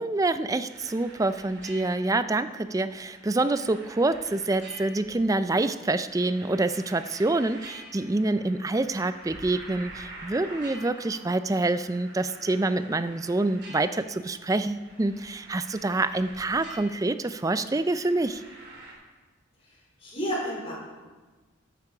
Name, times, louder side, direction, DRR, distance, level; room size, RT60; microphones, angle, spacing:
voice 1, 0.0-18.4, right 2 dB, 15° right, 12 dB, 0.3 m, -26 dB
sound 1, 0.7-18.9, right 2 dB, 55° right, 3.7 m, -47 dB
voice 2, 19.7-20.8, equal, 30° left, -4 dB, 3.6 m, -32 dB
12.5 x 8.3 x 4.9 m, 1.3 s
head